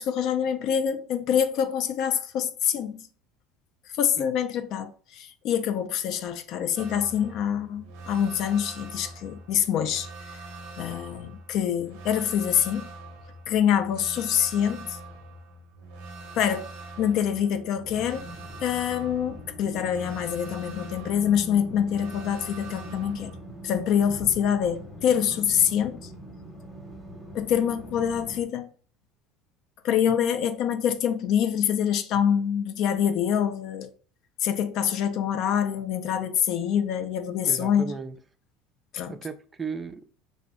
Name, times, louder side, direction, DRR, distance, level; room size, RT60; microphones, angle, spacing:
voice 1, 0.0-3.1 4.0-10.4 10.8-12.9 13.5-15.0 16.4-16.7 17.0-18.3 18.6-23.3 23.6-26.1 27.3-28.7 29.8-33.9 34.4-37.9 38.9-39.2, left 9 dB, 60° left, 0.3 m, -25 dB
sound 1, 6.8-23.4, right 2 dB, 80° right, 0.6 m, -43 dB
sound 2, 17.8-28.4, equal, ahead, 0.8 m, -43 dB
voice 2, 37.4-38.2 39.1-40.1, right 5 dB, 20° right, 0.3 m, -36 dB
2.6 x 2.0 x 3.5 m
supercardioid pair, 105°, 0 cm